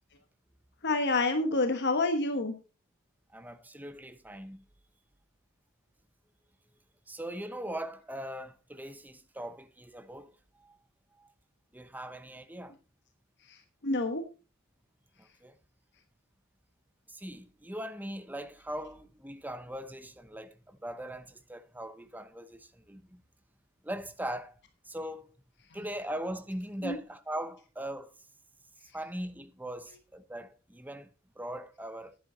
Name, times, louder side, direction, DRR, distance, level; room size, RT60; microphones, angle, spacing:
voice 1, 0.8-2.5 13.5-13.6 13.8-14.2 26.8-27.0, left 2 dB, 55° left, 1.3 m, -28 dB
voice 2, 3.3-4.6 7.1-10.3 10.6-10.8 11.2-11.3 11.7-12.7 15.2-15.5 17.1-23.2 23.8-24.6 24.9-25.3 25.7-28.1 28.9-31.1 31.4-32.1, right 1 dB, 10° right, 0.8 m, -40 dB
10.5 x 10.5 x 3.9 m
head